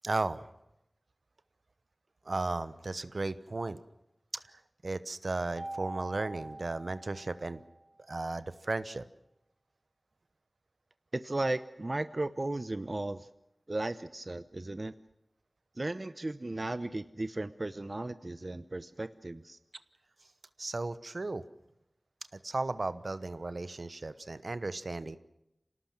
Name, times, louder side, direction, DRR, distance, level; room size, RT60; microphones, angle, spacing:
voice 1, 0.0-0.5 2.3-3.8 4.8-7.6 8.1-9.0 20.6-21.4 22.4-25.2, right 2 dB, 65° right, 14 dB, 1.0 m, -35 dB
Mallet percussion, 5.6-7.8, right 2 dB, 25° right, 2.0 m, -43 dB
voice 2, 11.1-13.3 13.7-14.9 15.8-19.6, right 2 dB, 45° right, 12 dB, 0.8 m, -35 dB
26.5 x 18.5 x 7.5 m, 0.87 s
cardioid pair, 40°, 0 cm